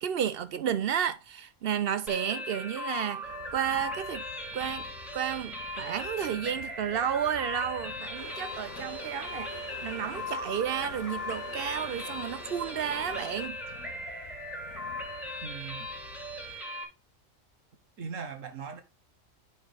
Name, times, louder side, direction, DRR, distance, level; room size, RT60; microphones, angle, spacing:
voice 1, 0.0-3.2 3.5-4.2 4.5-4.9 5.1-13.6, right 9 dB, 65° right, 0.6 m, -32 dB
sound 1, 2.1-16.8, left 1 dB, ahead, 1.4 m, -39 dB
sound 2, 3.2-16.6, left 10 dB, 85° left, 1.1 m, -51 dB
sound 3, 8.1-13.5, left 4 dB, 55° left, 1.4 m, -46 dB
voice 2, 15.4-15.9 18.0-18.8, right 6 dB, 85° right, 1.6 m, -39 dB
9.9 x 4.3 x 3.3 m
omnidirectional pair, 1.3 m